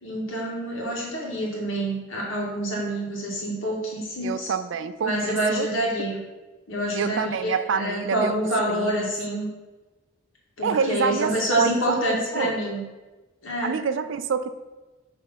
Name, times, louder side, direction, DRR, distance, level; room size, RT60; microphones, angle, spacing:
voice 1, 0.0-4.5 5.0-6.2 6.7-9.5 10.6-12.8 13.4-13.8, right 1 dB, 80° left, -4 dB, 2.1 m, -27 dB
voice 2, 4.2-5.7 6.9-8.4 8.7-9.1 10.6-12.0 12.3-12.5 13.6-14.5, right 5 dB, 70° right, 11 dB, 0.4 m, -27 dB
6.7 x 3.6 x 5.7 m, 1.2 s
head